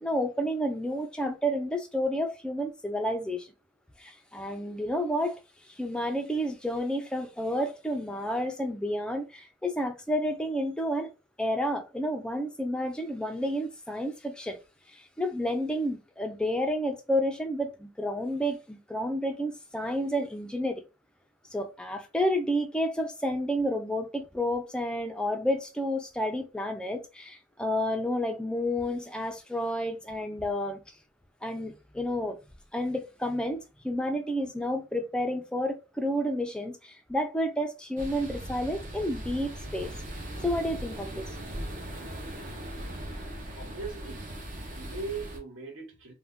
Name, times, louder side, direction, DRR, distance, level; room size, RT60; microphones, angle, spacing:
voice 1, 0.0-3.5 4.0-5.4 5.7-11.1 11.4-14.6 14.9-20.8 21.5-30.8 31.4-32.4 32.7-33.6 33.8-39.9 40.4-41.2, equal, 5° left, 0.3 m, -30 dB
sound 1, 38.0-45.4, right 1 dB, 40° right, 0.6 m, -39 dB
voice 2, 43.6-46.1, right 4 dB, 70° right, 0.8 m, -40 dB
2.5 x 2.1 x 3.4 m
head